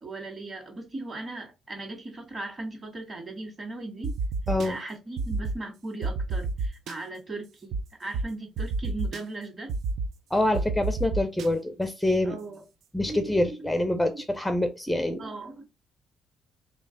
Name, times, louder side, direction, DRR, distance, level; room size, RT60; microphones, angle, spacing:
voice 1, 0.0-4.1 4.6-9.7 12.2-12.6 13.1-13.6 14.1-14.2 15.2-15.6, right 2 dB, 35° right, 1.8 m, -38 dB
sound 1, 4.0-4.7 5.2-5.5 6.0-6.9 7.7-7.8 8.1-8.2 8.6-9.2 9.7-10.1 10.5-11.5, right 3 dB, 70° right, 0.4 m, -28 dB
voice 2, 4.5-4.8 10.3-12.4 12.9-15.2, left 1 dB, 5° left, 0.5 m, -26 dB
3.2 x 3.1 x 3.9 m
cardioid pair, 90°, 0 cm